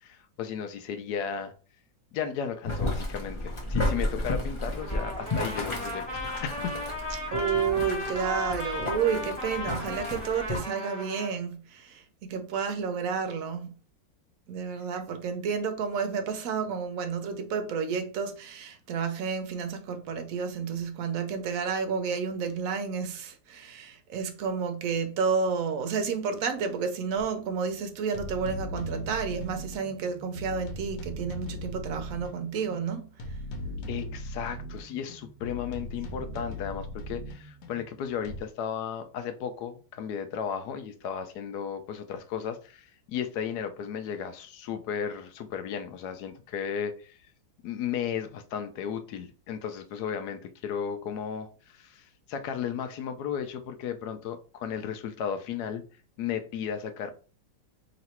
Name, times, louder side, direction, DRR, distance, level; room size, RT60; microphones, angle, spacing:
voice 1, 0.0-1.5 2.1-6.8 33.9-47.2 47.6-55.8 56.2-57.1, left 7 dB, 70° left, 1.0 m, -35 dB
Boiling, 2.6-10.6, left 2 dB, 40° left, 0.4 m, -33 dB
Trumpet, 4.8-11.3, left 1 dB, 5° left, 1.5 m, -35 dB
voice 2, 7.3-13.7 14.5-33.1, right 6 dB, 70° right, 0.8 m, -31 dB
sound 1, 27.2-27.3 28.1-38.4, left 1 dB, 85° left, 1.4 m, -39 dB
3.1 x 2.9 x 4.3 m
omnidirectional pair, 2.0 m